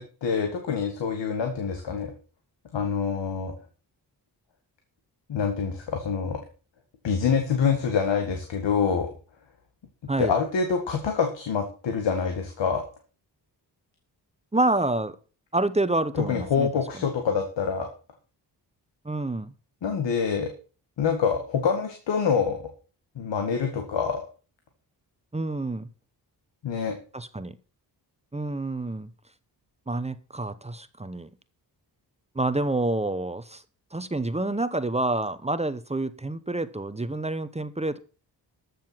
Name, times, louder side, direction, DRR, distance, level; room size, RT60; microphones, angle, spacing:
voice 1, 0.0-2.1 2.7-3.5 5.3-6.4 7.0-9.1 10.2-12.8 16.3-17.9 19.8-20.5 21.0-22.6 23.2-24.2 26.6-27.0, left 6 dB, 90° left, 2.0 m, -26 dB
voice 2, 14.5-15.2 15.5-16.7 16.9-17.0 19.0-19.5 25.3-25.9 27.1-27.6 28.3-29.1 29.9-31.3 32.3-33.6 33.9-38.0, right 2 dB, 15° right, 0.9 m, -28 dB
13.5 x 6.9 x 5.9 m
cardioid pair, 70°, 42 cm